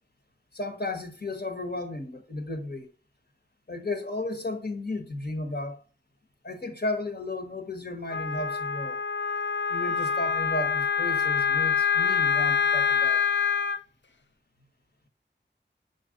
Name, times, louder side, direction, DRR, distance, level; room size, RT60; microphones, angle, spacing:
voice 1, 0.5-2.9 3.7-5.8 6.4-9.0 9.7-13.2, left 2 dB, 60° left, 1.3 m, -34 dB
Wind instrument woodwind instrument, 8.1-13.8, left 7 dB, 75° left, 0.5 m, -25 dB
5.9 x 4.2 x 3.8 m
wide cardioid pair, 50°, 19 cm